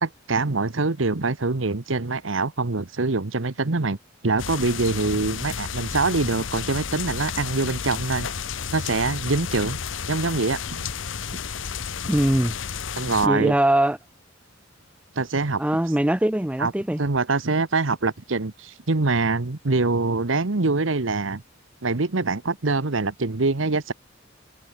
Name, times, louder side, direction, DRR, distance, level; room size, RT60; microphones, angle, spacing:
voice 1, 0.0-4.0 4.2-8.3 8.7-9.8 10.1-10.9 12.9-13.5 15.1-15.6 16.6-16.7 17.0-21.4 21.8-23.9, right 3 dB, 80° right, 1.2 m, -24 dB
sound 1, 4.4-13.3, left 6 dB, 75° left, 0.9 m, -32 dB
voice 2, 12.1-12.5 13.2-14.0 15.6-17.0, right 1 dB, 5° right, 0.5 m, -21 dB
head